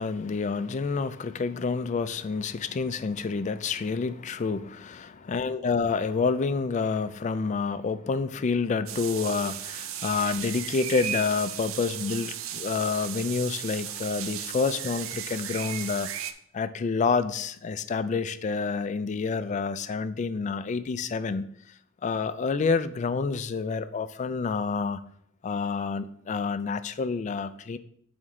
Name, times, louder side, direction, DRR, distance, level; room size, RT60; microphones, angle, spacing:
voice 1, 0.0-16.1 16.5-21.5 22.0-25.0 25.4-27.8, left 4 dB, 35° left, 13 dB, 0.3 m, -28 dB
sound 1, 8.9-16.3, right 10 dB, 75° right, 0.5 m, -35 dB
7.9 x 4.3 x 3.7 m, 0.65 s
head